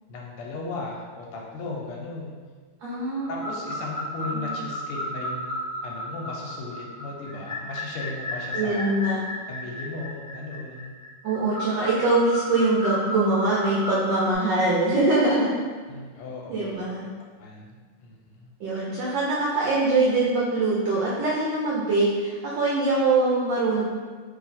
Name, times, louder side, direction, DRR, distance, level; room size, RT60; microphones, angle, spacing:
voice 1, 0.1-2.3 3.3-5.6 5.8-8.9 9.5-10.9 15.9-16.8 17.4-18.5, left 3 dB, 85° left, -2 dB, 1.5 m, -36 dB
voice 2, 2.8-3.4 8.5-9.2 11.2-15.5 16.5-17.0 18.6-23.8, right 2 dB, 70° right, -5 dB, 1.1 m, -23 dB
sound 1, 3.2-14.3, equal, 40° left, 0.5 m, -34 dB
3.1 x 3.1 x 4.0 m, 1.5 s
omnidirectional pair, 2.4 m